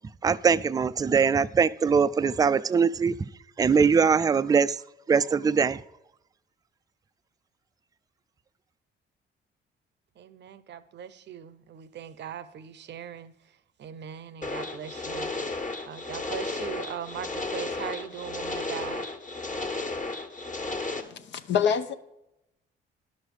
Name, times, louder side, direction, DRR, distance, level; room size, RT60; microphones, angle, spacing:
voice 1, 0.2-3.2 3.6-4.8 5.1-5.8, right 6 dB, 20° right, 0.3 m, -22 dB
voice 2, 10.2-15.5 15.8-19.1, right 9 dB, 65° right, 0.7 m, -40 dB
sound 1, 14.4-21.0, left 3 dB, 40° left, 1.4 m, -33 dB
voice 3, 21.0-21.9, left 7 dB, 65° left, 0.7 m, -26 dB
10.5 x 6.3 x 4.9 m
cardioid pair, 90°, 20 cm